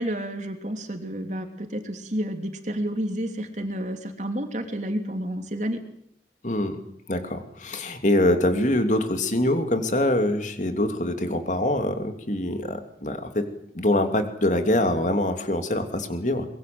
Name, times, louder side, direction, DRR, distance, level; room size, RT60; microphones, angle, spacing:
voice 1, 0.0-5.8, equal, 40° right, 5 dB, 3.2 m, -30 dB
voice 2, 6.4-6.8 7.1-13.5 13.7-16.5, left 1 dB, 45° left, 7 dB, 2.9 m, -24 dB
23.5 x 23.0 x 7.9 m, 0.69 s
head